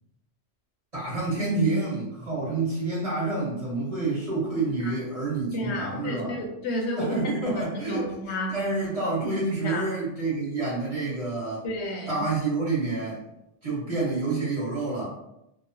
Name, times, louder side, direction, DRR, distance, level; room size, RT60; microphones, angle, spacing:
voice 1, 0.9-6.3 7.0-11.7 12.1-13.2 13.6-15.0, right 3 dB, 30° right, -8 dB, 1.2 m, -28 dB
voice 2, 5.5-7.2 7.5-8.5 9.6-9.8 11.6-12.2, left 1 dB, 70° left, 1 dB, 0.9 m, -31 dB
2.9 x 2.1 x 2.6 m, 0.83 s
omnidirectional pair, 1.2 m